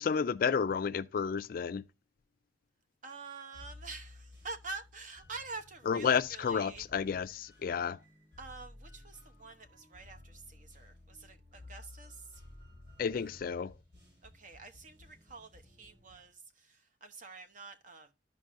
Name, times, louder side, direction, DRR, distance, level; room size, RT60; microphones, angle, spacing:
voice 1, 0.0-1.8 5.9-8.0 13.0-13.7, left 6 dB, 50° left, 0.3 m, -31 dB
voice 2, 3.0-6.8 8.4-12.4 14.2-18.1, right 3 dB, 45° right, 0.9 m, -47 dB
sound 1, 3.5-16.3, left 2 dB, 85° right, 4.0 m, -55 dB
13.0 x 5.2 x 2.5 m
head